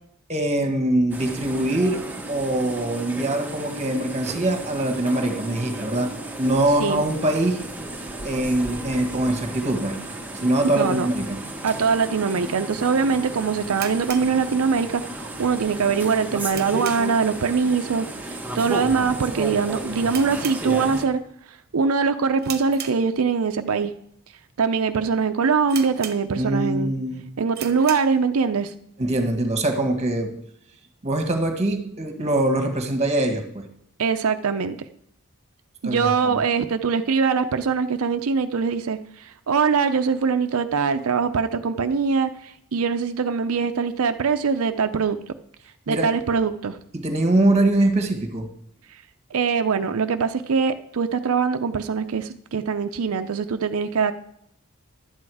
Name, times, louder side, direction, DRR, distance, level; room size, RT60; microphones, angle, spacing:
voice 1, 0.3-7.6 8.2-10.0 10.4-11.4 26.4-27.3 29.0-30.4 31.0-33.7 35.8-36.4 45.9-46.1 46.9-48.5, right 1 dB, 30° right, 5 dB, 1.6 m, -23 dB
sound 1, 1.1-21.0, right 2 dB, 10° right, 1.2 m, -34 dB
voice 2, 10.8-11.1 11.6-21.2 21.7-23.9 24.6-26.9 27.4-28.7 34.0-34.8 35.8-45.2 45.9-46.8 49.3-54.1, right 5 dB, 90° right, 9 dB, 0.6 m, -23 dB
sound 2, 13.7-15.1 15.3-15.4 16.0-17.3 17.6-17.9 18.2-18.3 19.0-19.2 19.5-19.6 20.0-21.2 21.6-21.9 22.4-23.5 24.1-24.2 24.8-24.9 25.1-25.2 25.7-26.6 27.0-27.1 27.5-28.2, right 8 dB, 50° right, 1.1 m, -37 dB
12.0 x 8.5 x 4.8 m, 0.73 s
head